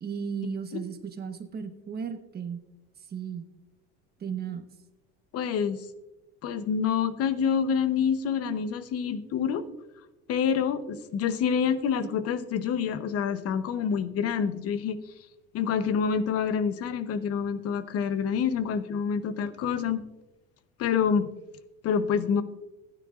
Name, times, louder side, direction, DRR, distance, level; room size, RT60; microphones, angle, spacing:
voice 1, 0.0-2.6 3.1-3.4 4.2-4.7, right 6 dB, 30° right, 7 dB, 1.2 m, -35 dB
voice 2, 5.3-5.9 6.4-9.6 10.3-15.0 15.5-20.0 20.8-21.3 21.8-22.4, left 7 dB, 50° left, 12 dB, 0.9 m, -27 dB
15.5 x 10.0 x 2.5 m, 0.98 s
cardioid pair, 115°, 30 cm